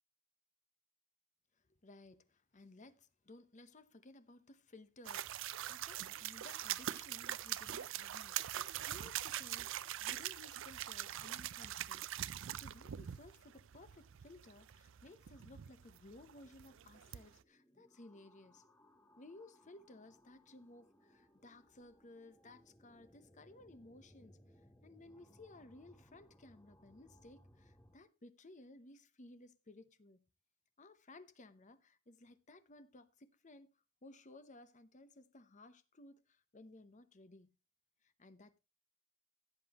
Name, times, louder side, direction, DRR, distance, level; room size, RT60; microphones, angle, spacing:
voice 1, 1.8-18.6 19.2-24.4 24.8-30.2 30.8-33.7 34.0-37.5 38.0-38.6, left 2 dB, 35° left, 0.8 m, -58 dB
sound 1, 5.0-17.4, right 12 dB, 60° right, 0.4 m, -43 dB
sound 2, 16.3-28.0, equal, 10° left, 1.1 m, -66 dB
16.0 x 7.7 x 3.0 m
head